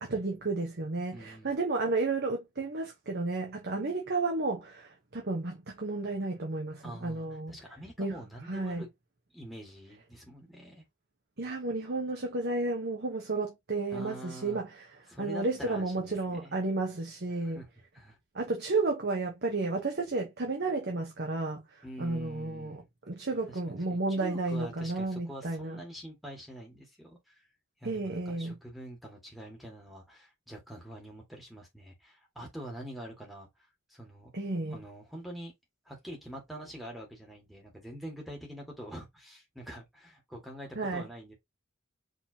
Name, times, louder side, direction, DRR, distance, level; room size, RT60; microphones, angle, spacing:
voice 1, 0.0-7.5 8.0-8.2 8.5-8.8 11.4-14.8 15.2-17.6 18.3-21.6 22.0-25.8 27.8-28.5 34.3-34.8 40.8-41.0, right 3 dB, 50° right, 1.1 m, -32 dB
voice 2, 1.1-1.6 6.8-8.9 9.3-10.8 13.9-14.6 15.1-16.5 17.3-17.7 17.9-18.2 21.8-22.9 23.5-23.6 23.9-27.4 27.8-33.5 33.9-34.3 34.7-35.5 35.9-41.3, right 1 dB, ahead, 1.9 m, -45 dB
4.9 x 3.7 x 2.8 m
head